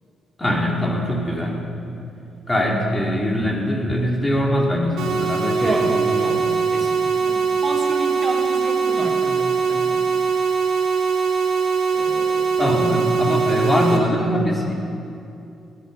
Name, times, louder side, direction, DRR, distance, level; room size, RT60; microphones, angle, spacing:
voice 1, 0.4-1.6 2.5-6.6 12.6-14.7, left 1 dB, 15° left, -1 dB, 3.0 m, -22 dB
sound 1, 5.0-14.0, right 5 dB, 85° right, 2.0 m, -21 dB
voice 2, 5.5-10.0 11.9-12.5, right 2 dB, 25° right, -2 dB, 2.6 m, -30 dB
18.5 x 11.5 x 5.4 m, 2.6 s
cardioid pair, 90°, 0 cm